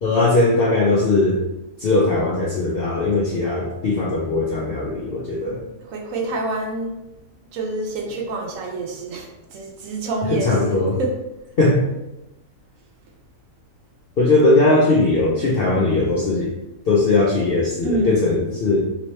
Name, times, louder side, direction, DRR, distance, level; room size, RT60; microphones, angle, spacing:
voice 1, 0.0-1.4 1.8-5.6 10.3-11.0 11.6-11.9 14.2-16.5 16.9-18.8, left 2 dB, 65° left, -4 dB, 0.5 m, -19 dB
voice 2, 5.9-6.9 7.5-11.2 17.8-18.3, right 2 dB, 70° right, 0 dB, 1.0 m, -27 dB
3.0 x 2.8 x 3.1 m, 0.95 s
omnidirectional pair, 1.6 m